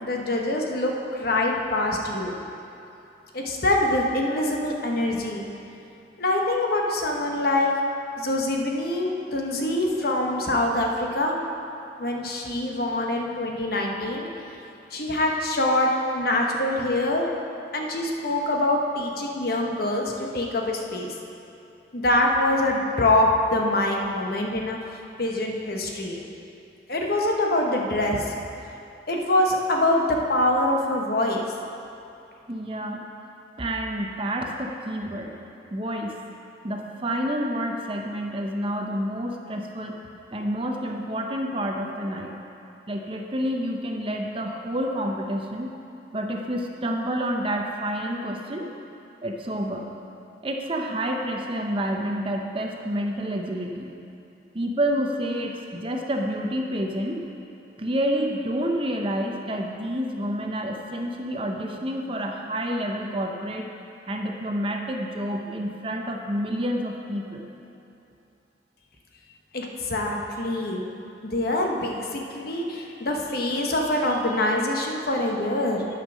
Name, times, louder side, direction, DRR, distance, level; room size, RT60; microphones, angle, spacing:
voice 1, 0.0-2.3 3.3-5.4 6.2-7.7 8.2-11.4 12.0-14.3 14.9-17.3 17.7-21.1 21.9-24.8 25.2-26.2 26.9-28.3 29.1-31.4 69.5-70.8 71.2-75.9, left 1 dB, 55° left, 0 dB, 1.0 m, -24 dB
voice 2, 32.5-33.1 33.6-35.3 35.7-36.2 36.6-40.0 40.3-42.3 42.9-45.7 46.1-48.7 49.2-49.9 50.4-53.9 54.5-57.2 57.8-63.7 64.1-67.4, equal, 30° right, 2 dB, 0.7 m, -29 dB
10.5 x 5.5 x 6.2 m, 2.8 s
head